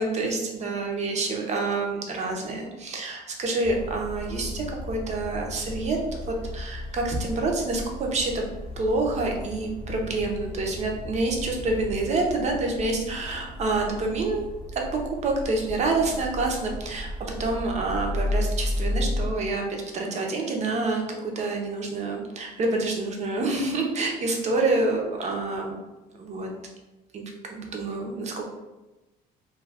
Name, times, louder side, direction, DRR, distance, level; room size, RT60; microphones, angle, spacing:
voice 1, 0.0-8.4 8.8-14.5 15.2-25.8 26.2-26.5 27.1-27.2 27.5-28.5, right 2 dB, 40° right, 1 dB, 0.6 m, -27 dB
sound 1, 3.6-19.3, left 1 dB, 35° left, 0.8 m, -34 dB
2.3 x 2.2 x 3.3 m, 1.1 s
cardioid pair, 110°, 17 cm